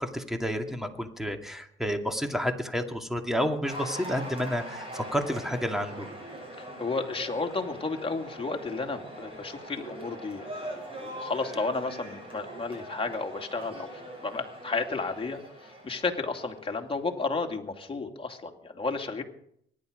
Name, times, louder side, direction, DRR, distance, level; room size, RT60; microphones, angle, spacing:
voice 1, 0.0-6.1, equal, ahead, 5 dB, 2.2 m, -30 dB
Cheering / Applause, 3.6-17.0, right 1 dB, 25° right, 7.6 m, -42 dB
voice 2, 6.6-15.4 15.8-19.2, left 3 dB, 25° left, 3 dB, 2.6 m, -32 dB
24.0 x 11.0 x 5.2 m, 0.68 s
cardioid pair, 90°, 20 cm